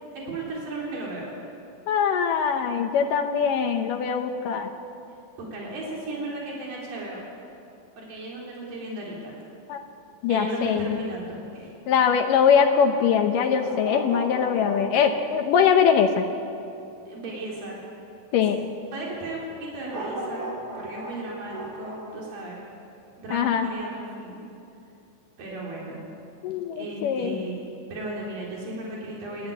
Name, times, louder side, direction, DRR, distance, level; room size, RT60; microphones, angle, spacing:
voice 1, 0.1-1.3 5.4-7.2 8.0-9.3 10.2-11.7 17.1-17.8 18.3-18.5 18.9-20.5 20.7-22.7 23.2-24.5 25.4-26.0 26.7-27.6 27.9-29.5, right 2 dB, 80° right, -3 dB, 5.3 m, -35 dB
voice 2, 1.9-4.7 9.7-9.8 10.2-10.9 11.9-16.3 18.3-18.6 23.3-23.7 26.4-27.4, left 7 dB, 75° left, 5 dB, 2.5 m, -22 dB
sound 1, 13.5-15.3 19.9-22.2 23.6-23.7, right 1 dB, 65° right, 6.2 m, -35 dB
27.0 x 12.5 x 9.6 m, 2.7 s
omnidirectional pair, 3.9 m